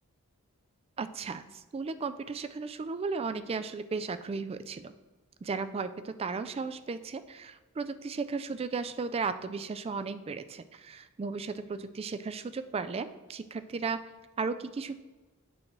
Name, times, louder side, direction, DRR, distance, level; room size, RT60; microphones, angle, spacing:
voice 1, 1.0-4.9 5.4-14.0 14.4-15.0, right 4 dB, 25° right, 12 dB, 0.3 m, -35 dB
8.9 x 5.8 x 3.1 m, 1.2 s
head